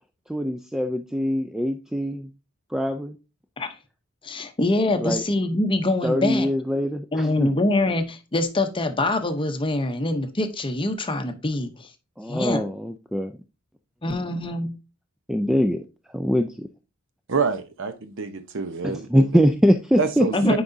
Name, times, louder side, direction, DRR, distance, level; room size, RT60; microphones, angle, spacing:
voice 1, 0.3-2.3 2.7-3.2 5.0-5.2 6.0-7.5 12.2-13.4 14.1-14.2 15.3-15.8 16.1-16.7 18.8-20.5, equal, 5° right, 7 dB, 0.3 m, -23 dB
voice 2, 4.2-6.5 7.1-11.9 12.3-12.6 14.0-14.7 20.3-20.6, left 2 dB, 25° left, 8 dB, 0.7 m, -24 dB
voice 3, 17.3-19.2 20.0-20.6, right 5 dB, 60° right, 10 dB, 0.8 m, -27 dB
9.3 x 4.8 x 2.6 m, 0.30 s
head